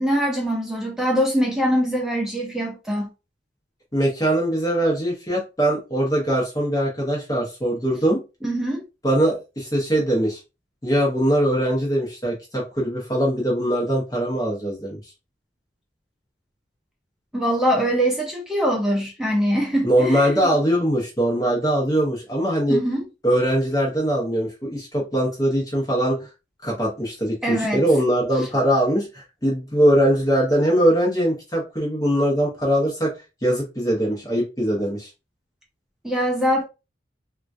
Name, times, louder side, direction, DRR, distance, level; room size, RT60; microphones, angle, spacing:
voice 1, 0.0-3.1 8.4-8.8 17.3-20.5 22.7-23.0 27.4-27.8 36.0-36.6, equal, 5° right, 0.5 m, -23 dB
voice 2, 3.9-8.2 9.0-10.4 10.8-15.0 19.8-22.8 23.2-26.2 26.6-33.1 33.4-35.1, right 1 dB, 20° left, 0.8 m, -21 dB
3.6 x 2.3 x 2.6 m
head